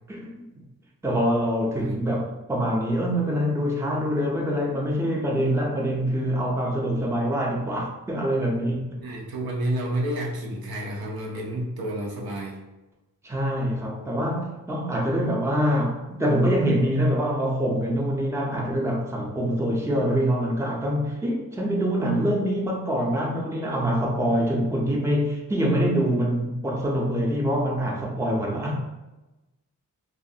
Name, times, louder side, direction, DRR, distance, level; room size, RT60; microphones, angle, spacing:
voice 1, 0.1-0.6 1.0-9.0 13.2-28.8, equal, 10° right, -2 dB, 0.5 m, -25 dB
voice 2, 9.0-12.6, right 1 dB, 80° right, -2 dB, 0.7 m, -30 dB
2.4 x 2.3 x 2.7 m, 1.0 s
wide cardioid pair, 70°, 36 cm